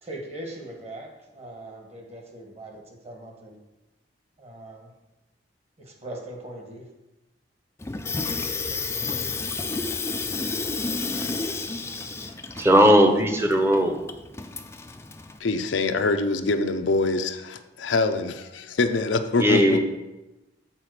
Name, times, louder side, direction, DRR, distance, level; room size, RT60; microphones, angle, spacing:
voice 1, 0.0-3.6 4.4-4.9 5.8-6.9, right 1 dB, 35° right, 2 dB, 1.5 m, -40 dB
Water tap faucet / Sink (filling or washing), 7.8-15.4, left 4 dB, 15° left, 0.4 m, -31 dB
voice 2, 12.6-14.0 19.4-19.8, equal, 15° right, 5 dB, 0.8 m, -18 dB
voice 3, 15.4-19.8, left 3 dB, 85° left, 7 dB, 0.6 m, -24 dB
7.6 x 4.2 x 6.5 m, 1.0 s
head